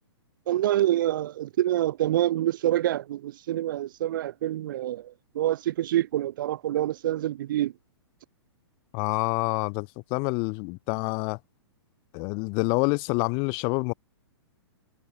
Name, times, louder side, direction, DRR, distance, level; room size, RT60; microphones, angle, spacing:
voice 1, 0.5-7.7, right 13 dB, 50° right, 1.2 m, -26 dB
voice 2, 8.9-11.4 12.1-13.9, left 35 dB, 35° left, 4.6 m, -27 dB
figure-of-eight pair, 110°, 14 cm